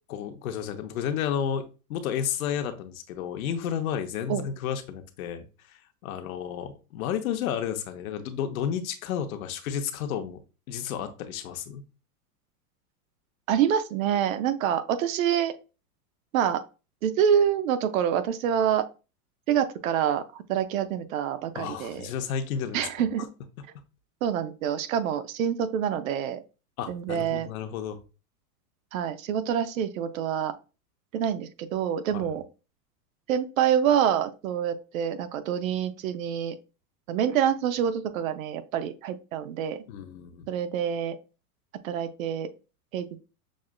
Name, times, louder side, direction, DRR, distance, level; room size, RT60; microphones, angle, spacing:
voice 1, 0.1-1.6 1.9-10.4 10.7-11.8 21.5-23.1 26.8-28.0 32.1-32.3 39.9-40.5, left 8 dB, 65° left, 7 dB, 0.8 m, -32 dB
voice 2, 13.5-15.5 16.3-16.6 17.0-18.9 19.5-22.1 22.7-23.3 24.2-26.4 26.9-27.5 28.9-30.5 31.1-32.4 33.3-36.6 37.1-39.8 40.5-41.2 41.8-42.5 42.9-43.2, right 9 dB, 60° right, 11 dB, 0.6 m, -26 dB
6.2 x 2.4 x 2.2 m, 0.31 s
supercardioid pair, 145°, 46 cm